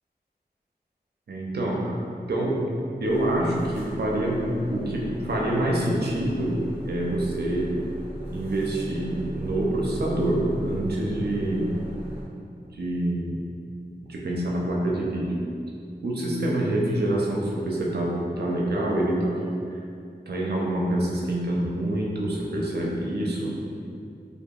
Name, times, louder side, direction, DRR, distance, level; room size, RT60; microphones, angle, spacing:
voice 1, 1.3-2.0 2.3-2.7 3.0-7.7 8.3-11.7 12.6-13.4 14.1-15.4 16.0-19.4 20.3-23.6, right 1 dB, 70° right, -3 dB, 0.4 m, -26 dB
sound 1, 3.0-12.2, equal, 10° right, 0.9 m, -37 dB
2.7 x 2.2 x 2.4 m, 2.4 s
wide cardioid pair, 60°, 17 cm